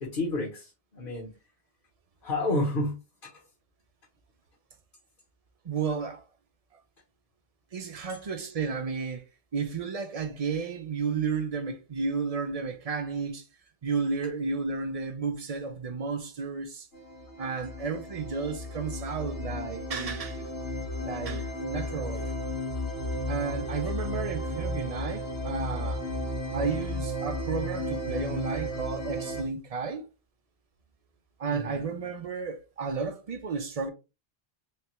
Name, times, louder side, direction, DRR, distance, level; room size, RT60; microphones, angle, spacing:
voice 1, 0.0-0.7 0.9-1.3 2.2-2.9 3.2-3.3 31.5-31.9, left 2 dB, 50° left, 1.2 m, -29 dB
voice 2, 5.6-6.2 7.7-9.2 9.5-13.4 13.8-16.9 17.4-20.5 21.0-22.3 23.3-26.0 26.5-30.0 31.4-33.9, right 5 dB, 45° right, 0.5 m, -32 dB
sound 1, 16.9-29.4, equal, 85° left, 1.5 m, -34 dB
3.3 x 3.3 x 3.0 m
omnidirectional pair, 1.2 m